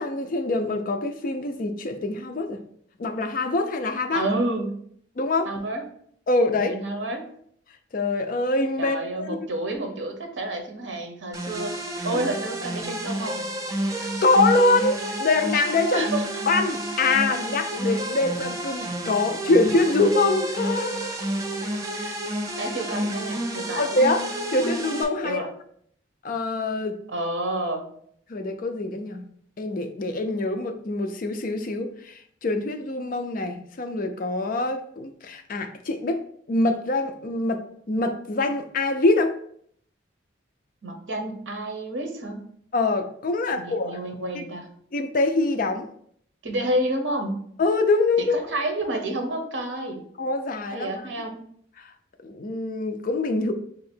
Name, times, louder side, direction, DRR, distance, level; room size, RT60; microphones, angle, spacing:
voice 1, 0.0-2.6 3.0-4.3 5.2-5.5 6.3-6.8 7.9-9.4 12.1-12.2 13.9-16.1 16.5-21.3 23.8-25.4 26.2-27.0 28.3-29.3 29.6-36.2 36.5-39.3 42.7-44.0 44.3-44.5 44.9-45.9 47.6-48.4 50.2-50.9 51.8-51.9 52.2-53.5, left 2 dB, 45° left, 7 dB, 0.4 m, -24 dB
voice 2, 4.1-4.8 5.4-5.8 6.7-7.2 8.8-11.8 12.0-13.4 15.9-16.4 21.9-22.2 22.6-23.9 25.2-25.5 27.1-27.8 40.8-42.4 43.5-44.7 46.4-47.4 48.2-50.0 50.7-51.4, right 1 dB, 70° right, 4 dB, 0.8 m, -29 dB
sound 1, 11.3-25.0, right 1 dB, 15° right, 0.4 m, -30 dB
3.6 x 2.8 x 4.3 m, 0.65 s
head